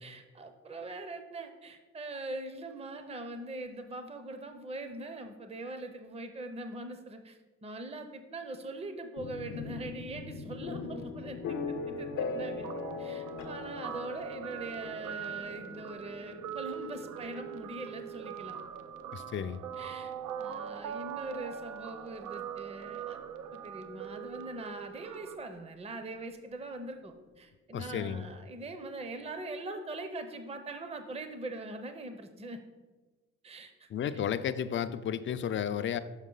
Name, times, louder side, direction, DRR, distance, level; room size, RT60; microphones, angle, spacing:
voice 1, 0.0-12.7 13.0-18.6 19.8-20.1 20.4-23.2 23.5-32.6 33.4-33.9, right 2 dB, 20° right, 7 dB, 0.6 m, -42 dB
sound 1, 9.2-22.9, left 4 dB, 80° left, 0.8 m, -41 dB
Guitar, 12.6-25.3, right 8 dB, 85° right, 0.5 m, -42 dB
voice 2, 19.1-19.6 27.7-28.3 33.9-36.0, left 8 dB, 40° left, 12 dB, 0.4 m, -33 dB
6.4 x 5.4 x 3.8 m, 1.2 s
cardioid pair, 90°, 30 cm